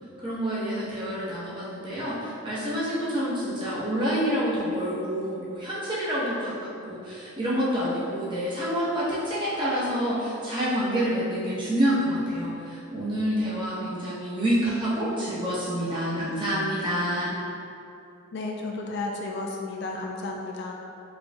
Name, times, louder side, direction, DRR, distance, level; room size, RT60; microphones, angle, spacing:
voice 1, 0.2-17.3, equal, 20° right, -8 dB, 0.8 m, -27 dB
voice 2, 18.3-20.7, left 2 dB, 50° left, 0 dB, 0.3 m, -33 dB
5.0 x 3.0 x 2.3 m, 2.7 s
head